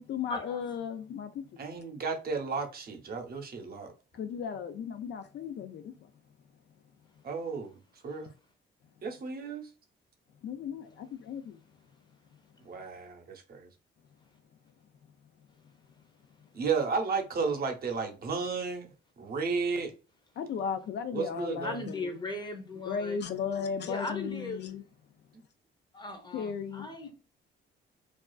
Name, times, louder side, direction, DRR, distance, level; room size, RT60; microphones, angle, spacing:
voice 1, 0.0-1.5 4.1-6.1 8.3-8.4 10.4-11.6 20.4-22.1 22.8-24.8 26.3-26.9, left 7 dB, 60° left, 0.4 m, -36 dB
voice 2, 1.6-3.9 7.2-7.7 8.0-8.3 9.0-9.7 12.6-13.7 16.5-18.9 19.2-19.9 21.1-21.9, right 5 dB, 50° right, 0.7 m, -33 dB
voice 3, 21.6-23.2 23.8-24.6 25.9-27.1, left 2 dB, 20° left, 0.6 m, -38 dB
2.4 x 2.3 x 2.2 m
cardioid pair, 90°, 20 cm